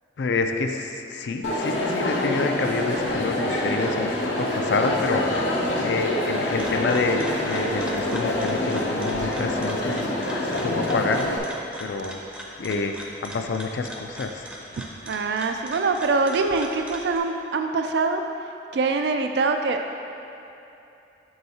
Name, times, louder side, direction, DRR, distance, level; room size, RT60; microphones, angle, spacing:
voice 1, 0.2-10.2 10.6-11.3 11.8-12.2 12.6-14.5, left 4 dB, 75° left, 5 dB, 0.4 m, -28 dB
Crowd, 1.4-11.4, left 1 dB, 90° left, 0.8 m, -26 dB
sound 1, 6.3-17.2, equal, 5° right, 0.5 m, -40 dB
voice 2, 15.1-18.2 18.7-19.9, right 3 dB, 70° right, 6 dB, 0.3 m, -24 dB
7.7 x 5.5 x 2.8 m, 2.8 s
head